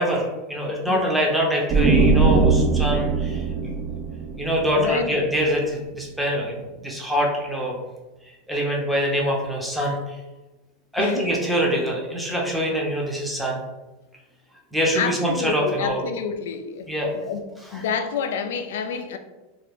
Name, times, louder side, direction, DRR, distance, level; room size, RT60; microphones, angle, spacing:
voice 1, 0.0-3.7 4.4-7.7 8.5-10.2 10.9-13.6 14.7-16.1 16.9-17.1 17.7-17.8, equal, ahead, -3 dB, 0.7 m, -24 dB
sound 1, 1.7-5.3, right 4 dB, 35° right, 0.5 m, -20 dB
voice 2, 4.8-5.3 11.0-11.3 14.9-16.9 17.1-17.4 17.7-19.2, left 6 dB, 85° left, 8 dB, 0.3 m, -28 dB
2.5 x 2.4 x 3.4 m, 1.1 s
supercardioid pair, 125°, 0 cm